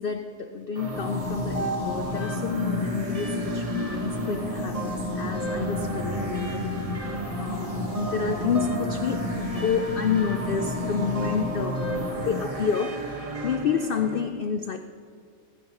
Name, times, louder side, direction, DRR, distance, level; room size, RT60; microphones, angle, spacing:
voice 1, 0.0-11.9 12.1-13.1 13.4-14.8, left 6 dB, 70° left, 8 dB, 0.5 m, -29 dB
sound 1, 0.7-14.3, equal, 25° right, 1.5 m, -32 dB
sound 2, 0.9-12.4, left 3 dB, 25° left, 0.9 m, -34 dB
sound 3, 1.6-11.6, right 5 dB, 75° right, 1.7 m, -40 dB
24.0 x 10.5 x 3.0 m, 2.2 s
omnidirectional pair, 1.6 m